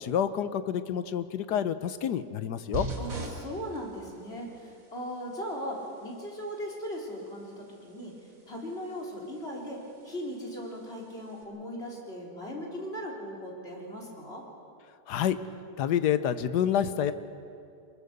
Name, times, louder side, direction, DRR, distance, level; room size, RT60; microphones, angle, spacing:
voice 1, 0.0-2.9 15.1-15.4 15.8-17.1, left 9 dB, 75° left, 12 dB, 1.4 m, -28 dB
sound 1, 2.7-11.4, right 1 dB, 50° right, 4.4 m, -44 dB
voice 2, 3.0-8.1 8.5-14.4, equal, 35° left, -2 dB, 4.0 m, -38 dB
23.5 x 21.5 x 6.7 m, 2.5 s
omnidirectional pair, 1.8 m